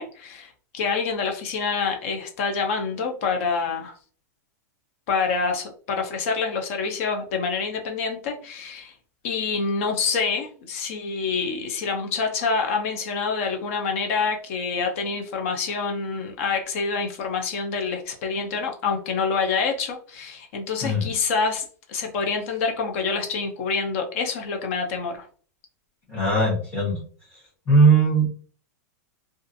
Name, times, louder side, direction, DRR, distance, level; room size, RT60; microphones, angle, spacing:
voice 1, 0.0-3.9 5.1-8.9 9.2-25.3, left 5 dB, 50° left, 4 dB, 0.5 m, -27 dB
voice 2, 26.1-27.0 27.7-28.3, right 3 dB, 15° left, -9 dB, 1.0 m, -19 dB
2.5 x 2.4 x 2.5 m, 0.43 s
supercardioid pair, 165°, 9 cm